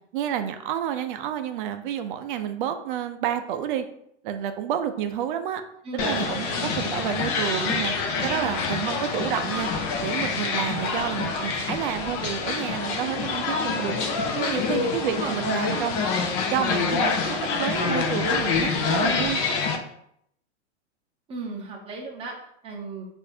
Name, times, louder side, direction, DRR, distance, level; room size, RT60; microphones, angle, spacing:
voice 1, 0.1-3.9 4.2-5.6 5.9-7.9 8.2-9.7 10.0-14.0 14.3-16.1 16.5-19.4, right 10 dB, 45° right, 9 dB, 0.5 m, -29 dB
voice 2, 5.8-6.8 8.1-8.5 14.5-15.4 15.7-15.8 21.3-23.1, right 3 dB, 15° right, -2 dB, 0.8 m, -36 dB
sound 1, 6.0-19.8, left 4 dB, 30° left, 0.5 m, -26 dB
6.3 x 2.6 x 2.7 m, 0.73 s
hypercardioid pair, 140°, 35 cm